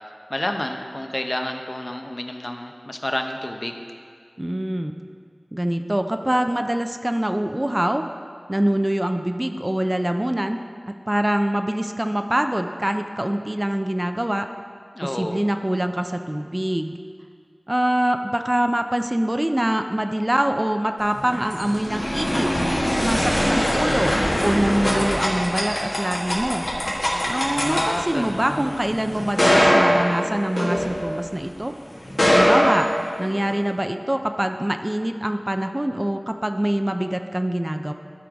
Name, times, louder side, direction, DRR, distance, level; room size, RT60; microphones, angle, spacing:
voice 1, 0.3-3.8 14.9-15.4 27.5-28.8, left 1 dB, 40° left, 4 dB, 0.6 m, -29 dB
voice 2, 4.4-5.0 5.5-8.0 8.5-10.6 10.9-14.5 15.0-17.0 17.7-22.5 22.9-26.7 27.3-31.7 32.3-32.9 33.2-37.9, right 1 dB, 25° right, 7 dB, 0.4 m, -24 dB
sound 1, 21.1-31.4 32.0-33.5, equal, 65° left, 1.7 m, -22 dB
12.5 x 4.8 x 3.5 m, 2.1 s
wide cardioid pair, 45°, 0 cm